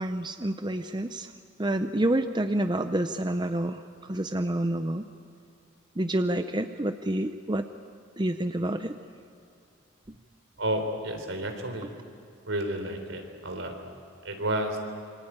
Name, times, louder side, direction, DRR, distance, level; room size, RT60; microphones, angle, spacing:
voice 1, 0.0-1.3 1.6-5.1 6.0-7.7 8.2-9.0, right 1 dB, 20° right, 8 dB, 0.6 m, -28 dB
voice 2, 10.6-11.9 12.5-13.7 14.2-14.8, right 1 dB, 75° right, 5 dB, 3.7 m, -31 dB
27.0 x 24.0 x 9.0 m, 2.4 s
head